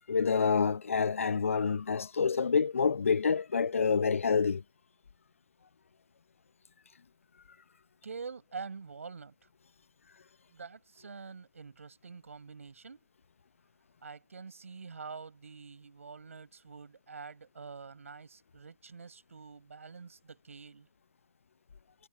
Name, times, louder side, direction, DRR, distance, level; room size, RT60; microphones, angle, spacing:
voice 1, 0.1-4.6, left 5 dB, 70° left, 0.8 m, -27 dB
voice 2, 8.0-9.3 10.5-13.0 14.0-20.9, right 5 dB, 70° right, 5.8 m, -46 dB
figure-of-eight pair, 140°, 8 cm